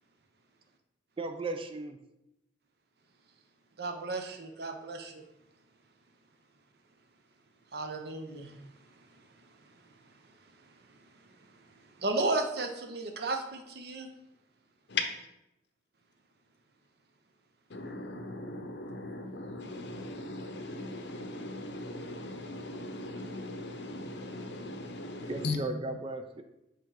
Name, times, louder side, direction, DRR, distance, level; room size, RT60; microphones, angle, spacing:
voice 1, 1.2-2.0 25.3-26.4, right 2 dB, 30° right, 7 dB, 0.4 m, -36 dB
voice 2, 3.8-5.1 7.7-8.5 12.0-14.1, right 2 dB, 55° right, 5 dB, 0.7 m, -33 dB
voice 3, 14.9-15.3 17.7-25.6, left 3 dB, 65° left, 6 dB, 0.8 m, -38 dB
5.7 x 3.7 x 4.8 m, 0.89 s
head